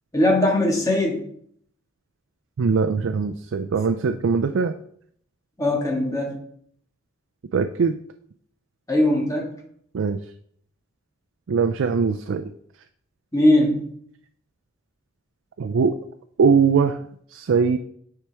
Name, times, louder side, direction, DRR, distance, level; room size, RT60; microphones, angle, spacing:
voice 1, 0.1-1.2 5.6-6.3 8.9-9.5 13.3-13.9, left 1 dB, 15° left, -1 dB, 1.6 m, -20 dB
voice 2, 2.6-4.7 7.5-8.0 9.9-10.2 11.5-12.5 15.6-16.0 16.4-17.0 17.3-17.8, right 5 dB, 70° right, 7 dB, 0.4 m, -21 dB
8.8 x 4.6 x 3.4 m, 0.66 s
head